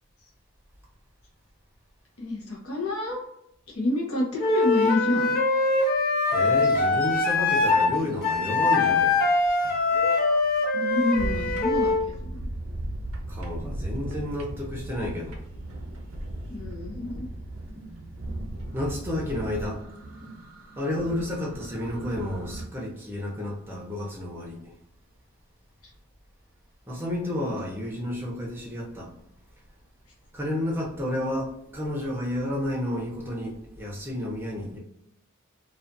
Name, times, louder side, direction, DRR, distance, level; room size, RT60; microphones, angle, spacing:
voice 1, 2.2-3.2 3.7-5.4 10.7-12.5 16.5-17.3, left 2 dB, 75° left, -3 dB, 0.7 m, -28 dB
Wind instrument woodwind instrument, 4.4-7.9 8.2-12.0, left 3 dB, 40° left, 0.4 m, -23 dB
voice 2, 6.3-9.2 13.3-15.3 18.7-19.8 20.8-24.6 26.9-29.1 30.3-34.8, left 1 dB, 10° right, -3 dB, 0.6 m, -31 dB
sound 1, 6.3-8.4 8.7-22.7, right 1 dB, 80° right, 0.6 m, -37 dB
2.4 x 2.4 x 2.5 m, 0.79 s
head